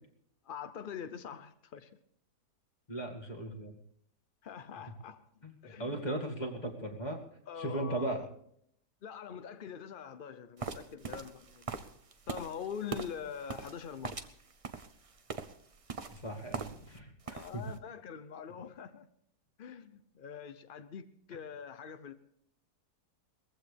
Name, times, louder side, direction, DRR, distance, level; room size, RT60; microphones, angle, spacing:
voice 1, 0.4-1.9 4.4-5.2 5.6-6.0 7.5-8.2 9.0-11.7 12.3-14.2 17.3-19.1 19.6-22.1, left 7 dB, 60° left, 11 dB, 0.5 m, -44 dB
voice 2, 2.9-3.7 5.4-7.2 7.6-8.2 16.1-17.6, right 1 dB, 25° left, 1 dB, 2.3 m, -37 dB
sound 1, 10.6-17.0 17.2-17.7, right 4 dB, 40° right, 0.5 m, -42 dB
20.5 x 15.0 x 3.4 m, 0.69 s
omnidirectional pair, 1.8 m